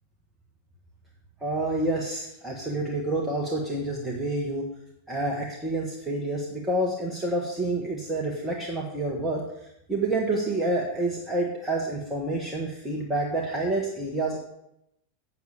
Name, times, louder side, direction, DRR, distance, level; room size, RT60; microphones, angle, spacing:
voice 1, 1.4-4.7 5.1-9.4 9.9-14.4, right 2 dB, 10° right, -2 dB, 1.6 m, -28 dB
8.1 x 6.8 x 6.8 m, 0.81 s
figure-of-eight pair, 90°, 0 cm